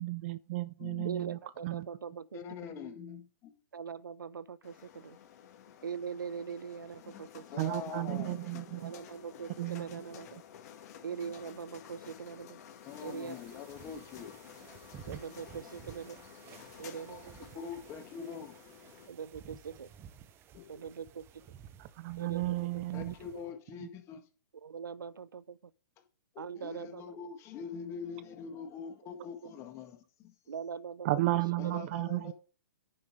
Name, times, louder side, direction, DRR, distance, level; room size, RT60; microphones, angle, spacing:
voice 1, 0.0-1.4 1.6-1.9 7.6-8.9 9.6-9.9 22.0-23.1 31.1-32.3, right 17 dB, 40° right, 0.4 m, -33 dB
voice 2, 1.0-2.8 3.7-5.2 5.8-7.4 8.8-10.4 11.0-12.6 13.0-13.4 15.0-16.2 16.8-17.3 19.1-19.9 20.7-21.3 22.2-22.8 23.2-23.4 24.6-25.7 26.4-27.2 29.2-29.5 30.5-31.1 31.6-31.8, right 6 dB, 90° right, 0.6 m, -42 dB
voice 3, 2.3-3.5 7.1-8.6 10.8-10.9 12.9-14.4 16.7-17.2 17.6-18.8 20.5-20.9 22.9-24.2 26.4-30.3 31.6-32.3, left 7 dB, 25° left, 1.8 m, -44 dB
sound 1, 4.6-19.1, left 9 dB, 50° left, 2.1 m, -52 dB
sound 2, 12.8-23.5, right 9 dB, 20° right, 0.8 m, -53 dB
10.0 x 5.6 x 4.8 m
hypercardioid pair, 135°, 11 cm